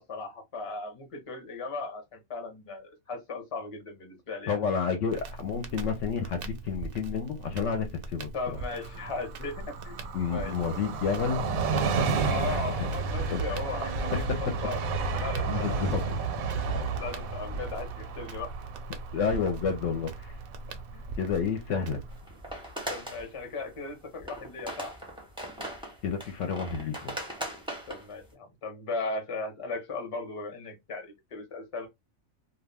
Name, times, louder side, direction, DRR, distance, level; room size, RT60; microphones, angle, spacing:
voice 1, 0.0-4.6 8.3-10.0 10.3-10.8 12.3-14.8 15.2-16.2 17.0-18.5 20.7-21.0 21.7-21.9 22.9-24.9 27.9-31.9, left 3 dB, 30° left, 0.7 m, -37 dB
voice 2, 4.5-8.3 10.1-11.5 11.9-12.1 12.5-12.6 13.3-13.4 13.7-14.2 15.5-16.0 19.1-20.4 21.2-22.0 26.0-27.2, left 6 dB, 70° left, 0.9 m, -30 dB
Crackle, 5.1-22.2, right 2 dB, 60° right, 0.6 m, -42 dB
Train, 8.6-21.9 22.2-22.3, right 4 dB, 90° right, 1.1 m, -32 dB
sound 1, 22.1-23.2 23.9-24.0 24.2-28.3, right 1 dB, 5° right, 0.5 m, -39 dB
2.4 x 2.2 x 3.3 m
omnidirectional pair, 1.4 m